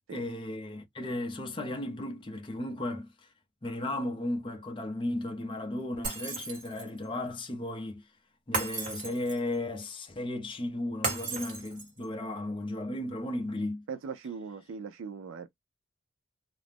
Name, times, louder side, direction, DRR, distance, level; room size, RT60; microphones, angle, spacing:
voice 1, 0.1-3.3 3.6-8.0 8.5-13.8, left 1 dB, 25° left, 0.5 m, -35 dB
Shatter, 6.0-7.0 8.5-9.5 11.0-12.0, right 3 dB, 40° right, 1.2 m, -35 dB
voice 2, 13.9-15.5, right 5 dB, 80° right, 0.4 m, -39 dB
2.4 x 2.0 x 3.3 m
head